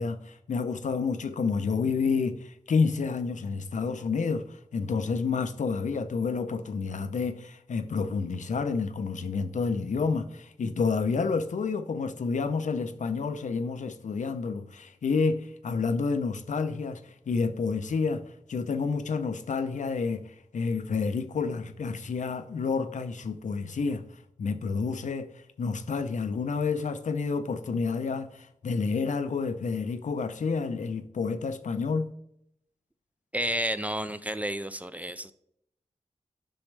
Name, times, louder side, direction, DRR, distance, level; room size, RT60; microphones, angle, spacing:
voice 1, 0.0-17.0 17.3-18.2 18.5-24.0 24.4-25.3 25.6-32.1, left 4 dB, 85° left, 0.6 m, -29 dB
voice 2, 33.3-35.3, right 1 dB, 10° right, 0.4 m, -31 dB
10.0 x 6.3 x 3.3 m
wide cardioid pair, 125°, 12 cm